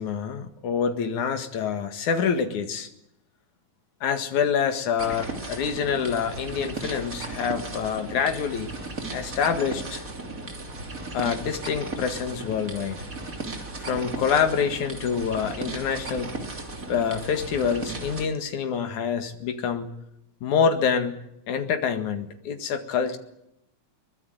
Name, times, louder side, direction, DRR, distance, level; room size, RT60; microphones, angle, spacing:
voice 1, 0.0-2.9 4.0-8.7 9.1-10.1 11.1-13.0 13.8-16.3 16.9-19.9 20.4-21.2 21.5-23.2, left 6 dB, 85° left, 7 dB, 3.3 m, -26 dB
sound 1, 5.0-18.3, right 2 dB, 30° right, 3.2 m, -36 dB
23.0 x 22.0 x 9.4 m, 0.79 s
omnidirectional pair, 3.3 m